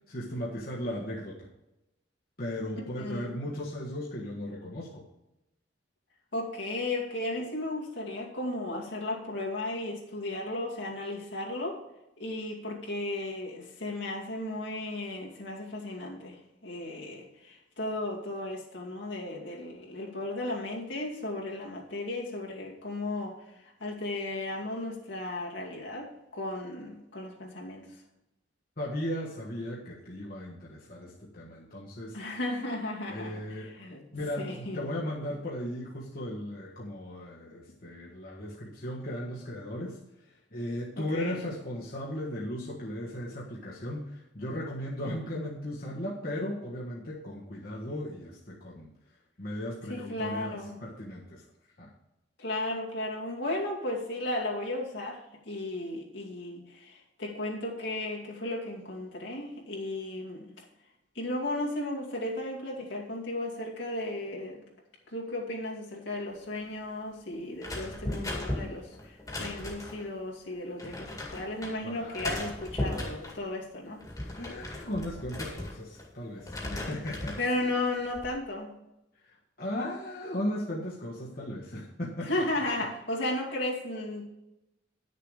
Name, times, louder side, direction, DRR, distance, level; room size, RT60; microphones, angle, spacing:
voice 1, 0.0-1.5 2.4-5.0 28.8-32.2 33.1-33.8 34.1-40.0 40.5-48.9 49.4-51.4 51.8-51.9 71.8-72.3 74.4-77.6 79.3-82.4, left 1 dB, 50° left, -5 dB, 1.5 m, -36 dB
voice 2, 3.0-3.4 6.3-11.8 12.2-16.4 16.6-23.3 23.8-27.9 32.1-34.0 34.4-34.9 41.0-41.4 49.9-50.8 52.4-55.2 55.5-60.5 61.1-64.6 65.1-74.0 76.6-76.9 77.4-78.7 82.2-84.2, left 1 dB, 75° left, -3 dB, 2.4 m, -35 dB
sound 1, 67.6-70.1 70.8-71.7 72.1-73.4 73.9-76.1 76.4-77.5 77.9-78.3, left 1 dB, 20° left, 2.0 m, -37 dB
10.5 x 6.8 x 4.9 m, 0.94 s
head